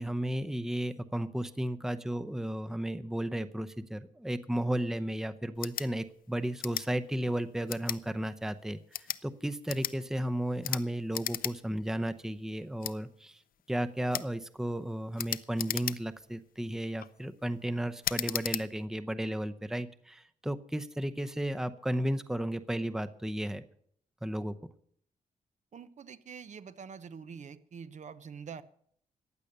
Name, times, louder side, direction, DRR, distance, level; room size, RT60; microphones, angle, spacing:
voice 1, 0.0-13.4 13.7-23.6 24.2-24.6, right 1 dB, 5° right, 11 dB, 0.7 m, -34 dB
sound 1, 5.5-5.9 6.6-6.9 7.7-8.0 8.8-9.2 9.7-10.0 10.6-10.8 11.1-11.5 11.9-12.0 12.8-13.0 14.1-14.3 15.2-16.2 16.8-17.1 18.0-18.6, left 10 dB, 80° left, 0.6 m, -35 dB
voice 2, 25.7-28.6, right 6 dB, 55° right, 13 dB, 0.8 m, -45 dB
15.5 x 10.0 x 6.6 m, 0.64 s
cardioid pair, 105°, 15 cm